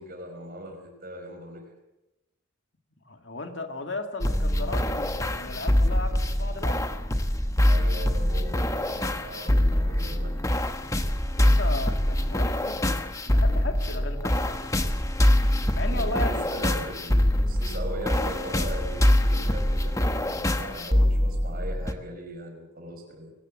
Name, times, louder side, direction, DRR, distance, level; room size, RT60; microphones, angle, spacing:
voice 1, 0.0-1.7 7.6-10.7 15.8-23.3, equal, 45° right, 4 dB, 5.2 m, -39 dB
voice 2, 3.0-6.9 7.2-7.3 11.3-14.9 15.7-16.5, left 2 dB, 60° left, 6 dB, 2.1 m, -36 dB
sound 1, 4.2-21.9, left 1 dB, 15° left, 1.1 m, -24 dB
22.5 x 18.5 x 7.7 m, 0.98 s
head